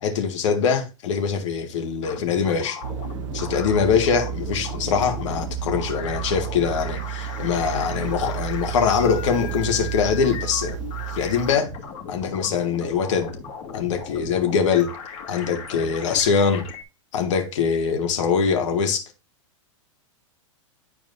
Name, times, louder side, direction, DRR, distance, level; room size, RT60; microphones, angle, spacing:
voice 1, 0.0-2.8 3.3-10.8 11.1-11.7 12.1-13.4 13.7-14.9 15.3-16.7 17.1-19.0, left 6 dB, 65° left, 1.9 m, -23 dB
sound 1, 2.0-16.8, left 6 dB, 40° left, 2.4 m, -37 dB
sound 2, 2.8-11.5, right 12 dB, 75° right, 1.0 m, -32 dB
11.0 x 4.6 x 2.7 m
hypercardioid pair, 130°, 17 cm